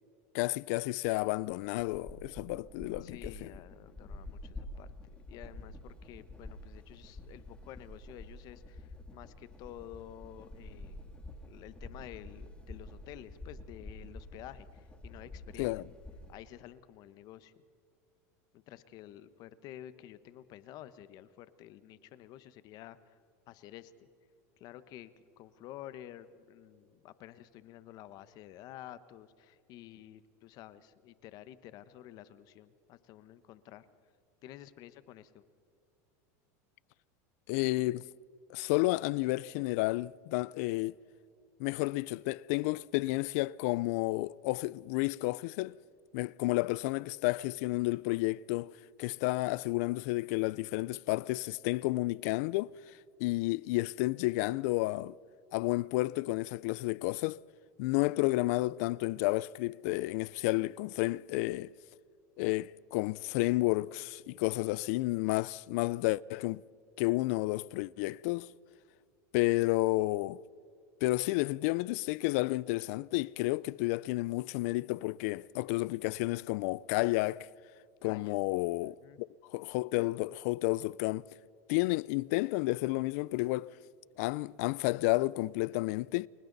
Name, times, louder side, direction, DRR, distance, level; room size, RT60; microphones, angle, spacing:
voice 1, 0.3-3.5 15.6-15.8 37.5-38.0 38.5-40.9 41.6-45.8 46.1-52.7 53.2-55.1 55.5-57.4 57.8-61.7 62.4-66.6 67.0-68.5 69.3-70.4 71.0-77.5 78.0-81.3 81.7-83.7 84.2-86.3, left 20 dB, 65° left, 0.4 m, -31 dB
sound 1, 1.5-16.3, left 1 dB, 10° left, 2.7 m, -48 dB
voice 2, 3.0-11.1 11.4-15.8 16.3-17.6 18.5-23.2 23.5-23.9 24.6-33.9 34.4-35.4 78.0-78.4 78.8-79.2, left 12 dB, 50° left, 1.1 m, -51 dB
30.0 x 22.0 x 4.1 m
supercardioid pair, 130°, 9 cm